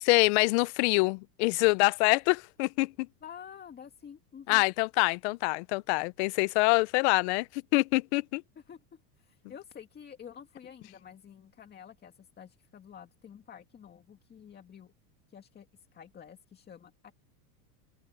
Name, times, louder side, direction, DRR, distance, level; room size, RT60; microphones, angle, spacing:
voice 1, 0.0-2.9 4.5-8.4, left 25 dB, 45° left, 0.5 m, -25 dB
voice 2, 3.2-4.7 8.6-14.9 15.3-17.1, left 8 dB, 20° left, 2.1 m, -49 dB
open air
supercardioid pair, 145°, 48 cm